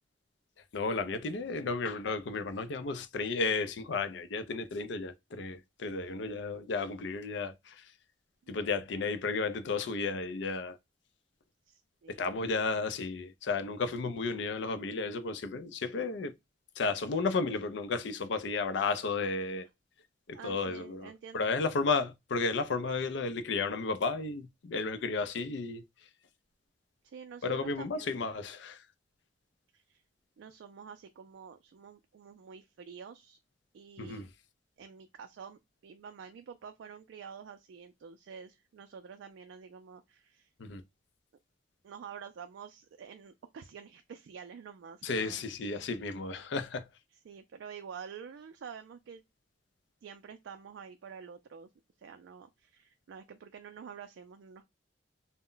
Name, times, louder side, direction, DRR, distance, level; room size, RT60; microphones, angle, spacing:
voice 1, 0.7-7.9 8.5-10.8 12.1-16.3 16.8-19.7 20.3-25.8 27.4-28.8 34.0-34.3 40.6-40.8 45.0-46.9, left 4 dB, 70° left, 0.4 m, -33 dB
voice 2, 11.7-12.4 20.3-21.7 27.0-28.2 29.7-30.0 30.4-33.4 33.7-34.3 34.8-40.5 41.8-45.4 47.2-49.2 50.0-51.7 52.0-54.6, right 6 dB, 75° right, 0.3 m, -48 dB
2.1 x 2.0 x 3.7 m
head